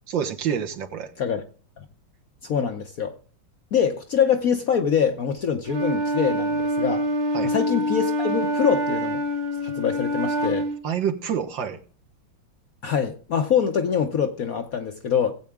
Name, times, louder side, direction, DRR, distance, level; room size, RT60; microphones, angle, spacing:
voice 1, 0.1-1.1 7.3-7.5 10.8-11.8, right 8 dB, 65° right, 1.9 m, -27 dB
voice 2, 2.4-3.2 3.7-7.1 7.4-9.2 9.6-10.7 12.8-15.3, left 7 dB, 60° left, 1.0 m, -24 dB
Wind instrument woodwind instrument, 5.7-10.8, equal, 50° right, 0.5 m, -25 dB
17.5 x 8.1 x 3.6 m
omnidirectional pair, 2.2 m